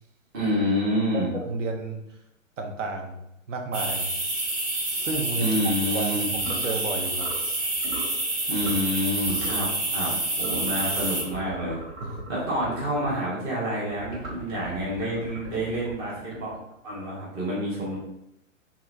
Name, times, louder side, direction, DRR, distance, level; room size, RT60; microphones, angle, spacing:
voice 1, 0.3-1.3 5.4-6.3 8.5-11.8 12.3-16.5 16.8-18.0, equal, 10° right, -6 dB, 0.4 m, -28 dB
voice 2, 1.1-2.0 2.6-3.2 3.5-4.1 5.0-5.5 5.9-7.3 12.0-12.2, right 3 dB, 70° right, 3 dB, 0.6 m, -31 dB
sound 1, 3.7-11.2, right 2 dB, 30° right, 0.8 m, -28 dB
sound 2, 6.4-6.7 7.2-7.5 7.8-8.1 8.6-9.0 9.2-9.7 10.4-13.2 13.9-16.7, right 3 dB, 85° right, 1.3 m, -40 dB
2.7 x 2.5 x 2.2 m, 0.82 s
figure-of-eight pair, 110°, 39 cm